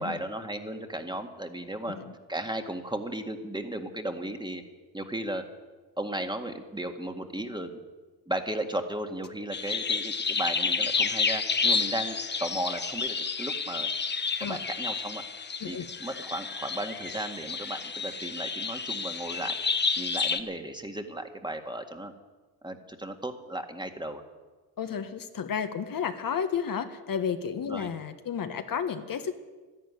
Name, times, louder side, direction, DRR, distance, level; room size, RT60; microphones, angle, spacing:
voice 1, 0.0-2.0 2.3-4.6 4.9-5.4 6.0-7.8 8.3-13.9 14.4-15.2 15.7-19.5 20.0-22.1 22.6-24.2 27.7-27.9, right 1 dB, 10° right, 5 dB, 1.9 m, -35 dB
sound 1, 9.5-20.4, left 5 dB, 25° left, 1.2 m, -30 dB
voice 2, 24.8-29.3, left 7 dB, 50° left, 8 dB, 1.5 m, -32 dB
12.5 x 11.5 x 9.7 m, 1.3 s
supercardioid pair, 70°, 42 cm